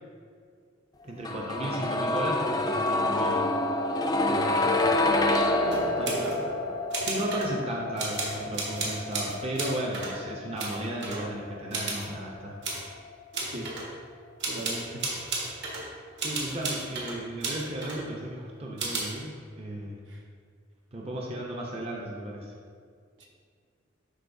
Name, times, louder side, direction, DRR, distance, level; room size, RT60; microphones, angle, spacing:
voice 1, 1.0-3.4 4.3-4.8 6.0-6.2 7.1-12.6 16.2-20.0 20.9-22.5, right 1 dB, 30° right, -2 dB, 0.7 m, -35 dB
sound 1, 1.2-13.1 13.4-13.5, left 2 dB, 20° left, 0.4 m, -28 dB
sound 2, 5.6-6.4 6.9-7.5 8.0-10.1 10.6-11.3 11.7-12.1 12.6-12.9 13.3-13.9 14.4-15.8 16.2-18.0 18.8-19.1, right 3 dB, 65° right, 1.6 m, -33 dB
voice 2, 5.6-6.6 13.5-13.7 14.4-15.0 20.1-20.2 23.2-23.3, right 1 dB, 80° right, -2 dB, 1.3 m, -36 dB
11.5 x 4.1 x 2.7 m, 2.1 s
head